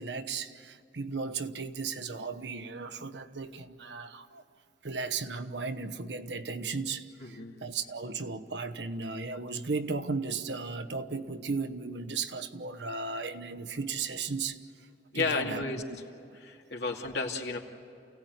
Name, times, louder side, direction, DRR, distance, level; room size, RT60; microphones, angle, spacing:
voice 1, 0.0-4.4 4.8-14.6 15.1-15.6 15.9-16.0, right 4 dB, 85° right, 1.1 m, -35 dB
voice 2, 7.2-7.6 15.1-15.8 16.4-17.6, left 3 dB, 80° left, 2.5 m, -32 dB
29.0 x 17.0 x 9.4 m
head